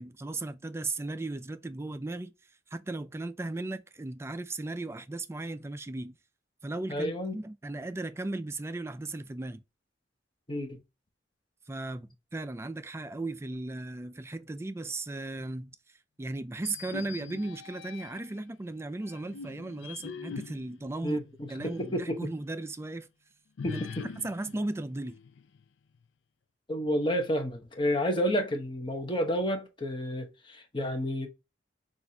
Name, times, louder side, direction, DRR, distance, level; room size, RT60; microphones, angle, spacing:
voice 1, 0.0-2.3 2.7-6.2 6.6-9.6 11.7-15.8 16.2-21.2 21.5-23.1 23.7-23.8 24.2-25.2, right 2 dB, 15° right, 0.3 m, -36 dB
voice 2, 6.9-7.4 10.5-10.8 21.0-22.3 23.6-24.0 26.7-31.3, equal, 25° left, 0.9 m, -30 dB
sound 1, 16.6-18.4 19.0-22.0 22.4-22.5 23.6-25.6, left 6 dB, 80° left, 0.4 m, -44 dB
5.9 x 2.5 x 2.7 m
head